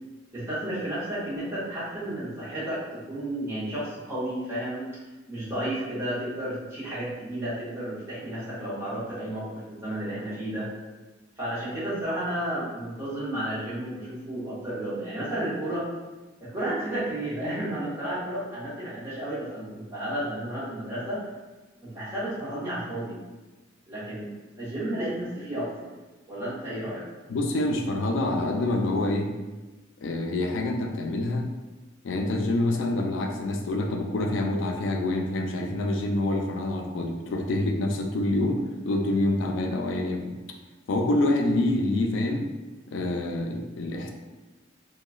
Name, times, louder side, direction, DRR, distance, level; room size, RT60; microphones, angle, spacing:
voice 1, 0.3-4.8 5.3-10.7 11.4-15.8 16.4-21.2 21.8-23.2 23.9-24.3 24.6-25.9 26.3-27.0, right 1 dB, 15° right, -11 dB, 0.8 m, -32 dB
voice 2, 27.3-29.3 30.0-31.5 32.0-40.4 40.9-42.5 42.9-44.1, left 2 dB, 70° left, 3 dB, 0.4 m, -26 dB
2.9 x 2.2 x 2.3 m, 1.2 s
head